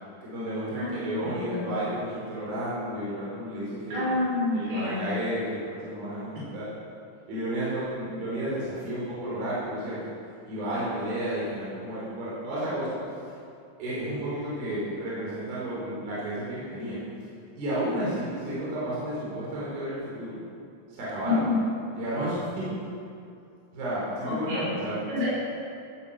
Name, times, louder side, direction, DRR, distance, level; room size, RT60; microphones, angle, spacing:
voice 1, 0.2-4.1 4.5-6.7 7.3-10.1 10.4-13.0 13.8-17.1 17.6-20.4 20.9-21.5 22.0-22.7 23.7-25.1, right 1 dB, 65° right, -8 dB, 6.1 m, -32 dB
voice 2, 0.8-1.6 3.9-5.0 21.2-21.7 24.2-24.7 25.1-25.4, left 2 dB, 80° right, -7 dB, 7.0 m, -28 dB
16.5 x 9.7 x 7.5 m, 2.4 s
omnidirectional pair, 4.6 m